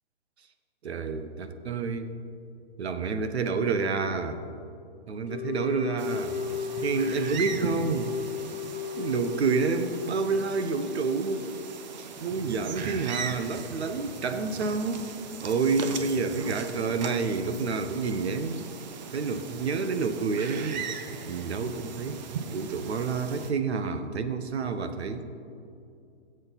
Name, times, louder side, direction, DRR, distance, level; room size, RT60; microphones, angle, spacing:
voice 1, 0.8-2.2 2.8-4.4 5.1-6.3 6.8-8.2 9.0-11.5 12.2-15.0 15.4-18.6 19.1-20.9 21.3-22.2 22.5-25.3, right 4 dB, 75° right, 9 dB, 1.1 m, -29 dB
sound 1, 5.3-12.0, left 7 dB, 85° left, 0.9 m, -35 dB
sound 2, 6.0-23.5, right 6 dB, 40° right, 0.8 m, -39 dB
15.5 x 7.9 x 4.0 m, 2.5 s
hypercardioid pair, 160°, 33 cm